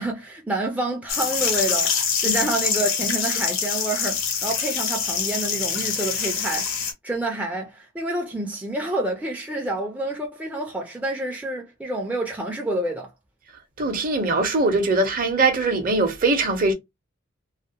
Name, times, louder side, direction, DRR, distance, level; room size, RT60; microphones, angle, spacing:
voice 1, 0.0-6.7 7.0-13.1, right 1 dB, 5° right, 0.3 m, -28 dB
sound 1, 1.1-6.9, left 6 dB, 80° left, 0.7 m, -25 dB
voice 2, 13.8-16.7, right 3 dB, 45° right, 0.6 m, -21 dB
2.3 x 2.0 x 2.7 m
head